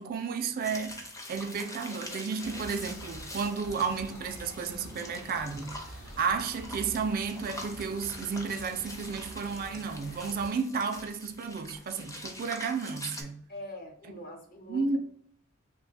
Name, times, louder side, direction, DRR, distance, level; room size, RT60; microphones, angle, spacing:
voice 1, 0.0-13.4 14.0-14.1 14.7-15.0, right 5 dB, 45° right, 0.3 m, -32 dB
sound 1, 0.6-13.2, left 1 dB, 15° left, 0.5 m, -45 dB
sound 2, 2.4-10.5, equal, 80° left, 1.0 m, -47 dB
voice 2, 13.5-15.0, left 1 dB, 45° left, 0.8 m, -43 dB
3.0 x 2.2 x 3.9 m
head